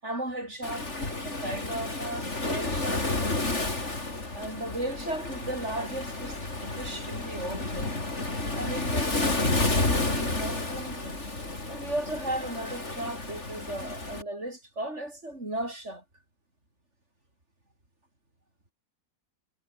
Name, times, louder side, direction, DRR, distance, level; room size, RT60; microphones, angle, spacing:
voice 1, 0.0-3.1 4.3-8.0 8.5-11.2 11.7-16.0, right 1 dB, 45° right, 6.3 m, -36 dB
Waves surf, 0.6-14.2, left 2 dB, 45° left, 4.7 m, -31 dB
omnidirectional pair, 1.7 m